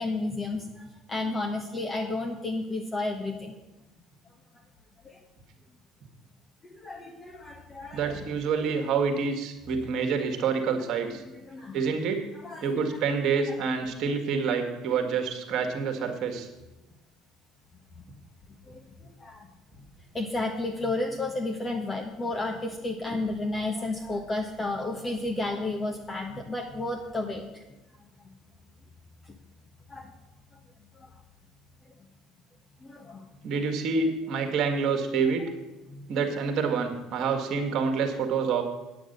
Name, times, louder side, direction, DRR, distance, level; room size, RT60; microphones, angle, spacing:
voice 1, 0.0-3.5 5.0-5.2 6.7-8.2 11.4-11.8 12.4-12.8 18.7-18.8 19.2-19.5 20.1-27.6 29.9-30.1 31.0-31.1 32.8-33.2 35.9-36.0, left 2 dB, 25° left, 1 dB, 1.4 m, -32 dB
voice 2, 7.9-11.2 11.7-12.3 12.6-16.5 33.4-35.5 36.1-38.6, right 5 dB, 55° right, 4 dB, 1.9 m, -27 dB
9.2 x 8.6 x 6.7 m, 1.0 s
hypercardioid pair, 65°, 0 cm